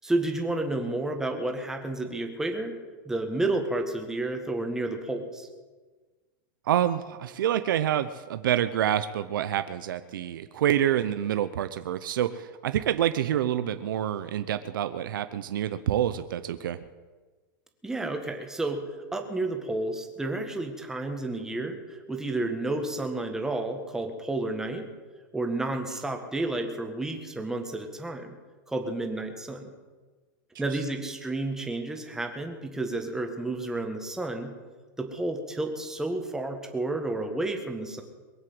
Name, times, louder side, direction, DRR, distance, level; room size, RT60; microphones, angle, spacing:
voice 1, 0.0-2.8 3.0-5.5 17.8-18.8 19.1-24.9 25.3-28.4 28.7-29.7 30.6-34.5 35.0-38.0, right 2 dB, 5° right, 4 dB, 1.6 m, -31 dB
voice 2, 6.7-16.8, right 11 dB, 85° right, 11 dB, 0.8 m, -27 dB
22.5 x 7.8 x 7.9 m, 1.3 s
supercardioid pair, 160°, 11 cm